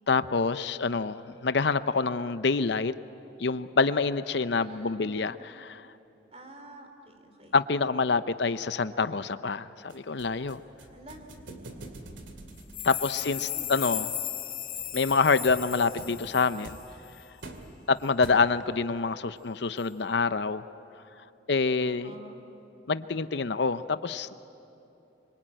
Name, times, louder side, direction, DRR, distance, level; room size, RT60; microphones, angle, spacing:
voice 1, 0.1-2.9 3.4-5.9 7.5-10.6 12.8-14.1 14.9-16.8 17.9-20.6 21.5-22.1 22.9-24.3, left 4 dB, 65° left, 12 dB, 0.7 m, -26 dB
voice 2, 4.5-5.1 6.3-7.6 10.9-11.2 12.8-13.8 21.8-22.4, right 1 dB, 35° right, 5 dB, 3.0 m, -49 dB
sound 1, 9.9-18.8, right 1 dB, 85° right, 2.5 m, -48 dB
sound 2, 12.6-16.9 17.1-17.2, left 11 dB, 45° left, 2.2 m, -36 dB
26.0 x 25.0 x 9.0 m, 2.9 s
head